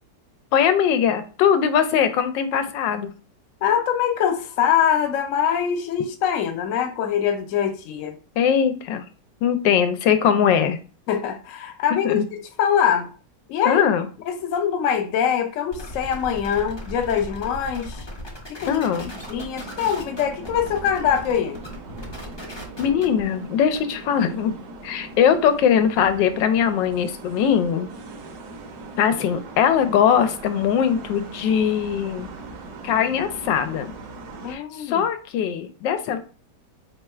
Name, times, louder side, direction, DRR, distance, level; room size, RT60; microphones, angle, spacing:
voice 1, 0.5-3.1 8.4-9.1 9.4-10.8 12.0-12.3 13.6-14.1 18.7-19.1 22.8-24.5 24.8-27.9 29.0-32.3 32.8-33.9 34.5-36.2, left 8 dB, 85° left, 1.3 m, -21 dB
voice 2, 3.6-8.2 11.1-13.1 13.5-13.8 14.3-18.0 18.5-18.7 19.3-21.6 34.4-35.1, left 8 dB, 65° left, 0.8 m, -23 dB
sound 1, 15.7-23.2, left 1 dB, 30° left, 0.5 m, -37 dB
sound 2, 19.1-34.5, right 3 dB, 75° right, 1.3 m, -40 dB
3.5 x 2.3 x 4.3 m
omnidirectional pair, 1.9 m